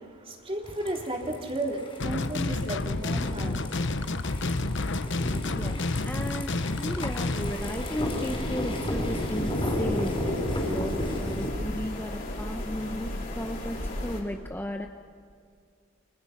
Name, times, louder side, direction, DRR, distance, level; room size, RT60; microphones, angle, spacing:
voice 1, 0.0-3.8, right 1 dB, 25° right, 1 dB, 3.4 m, -34 dB
sound 1, 0.6-11.5, left 1 dB, 25° left, 4.9 m, -33 dB
sound 2, 2.0-7.5, left 2 dB, 60° left, 1.0 m, -30 dB
voice 2, 5.5-14.9, equal, 10° left, 5 dB, 0.9 m, -35 dB
sound 3, 7.4-14.2, left 1 dB, 45° left, 5.3 m, -35 dB
30.0 x 25.0 x 5.9 m, 2.2 s
head